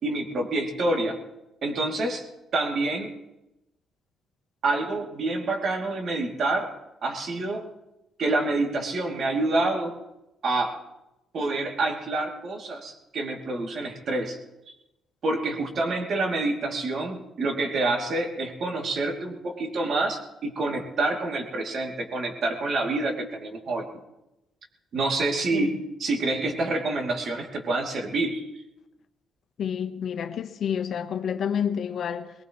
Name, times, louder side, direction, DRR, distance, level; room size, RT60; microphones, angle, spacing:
voice 1, 0.0-1.2 1.6-2.2 2.5-3.1 4.6-6.7 7.0-7.7 8.2-10.0 10.4-10.8 11.3-14.4 14.7-14.8 15.2-23.9 24.9-28.5, right 2 dB, 55° right, 2.7 m, -27 dB
voice 2, 25.5-25.8 29.6-32.3, left 8 dB, 65° left, 1.1 m, -29 dB
21.0 x 20.0 x 3.1 m
cardioid pair, 90°, 0 cm